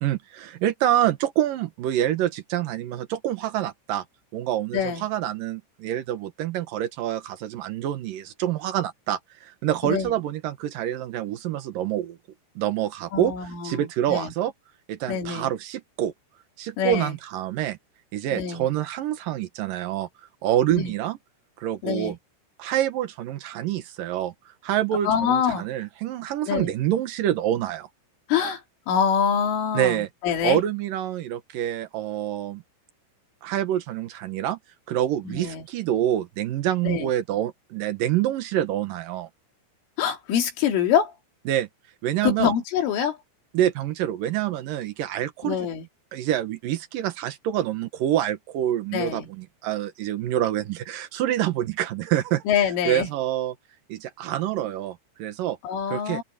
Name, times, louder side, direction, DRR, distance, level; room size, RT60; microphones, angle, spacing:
voice 1, 0.0-4.0 4.3-12.2 12.6-13.3 13.6-14.5 14.9-16.1 16.6-17.8 18.1-20.1 20.4-21.2 21.6-22.1 22.6-27.9 29.7-30.1 30.4-32.6 33.4-34.6 34.9-39.3 41.5-41.7 42.0-42.5 43.5-45.6 46.1-52.4 52.9-53.5 53.9-55.6 55.9-56.2, right 12 dB, 85° right, 1.9 m, -26 dB
voice 2, 4.7-5.1 9.8-10.1 13.1-14.3 15.1-15.5 16.8-17.2 18.3-18.7 20.8-20.9 21.8-22.2 25.0-25.7 26.5-26.7 28.3-30.6 35.3-35.7 36.8-37.1 40.0-41.2 42.2-43.2 45.4-45.9 48.9-49.3 52.5-53.1 55.6-56.2, left 8 dB, 70° left, 5.2 m, -25 dB
omnidirectional pair, 5.9 m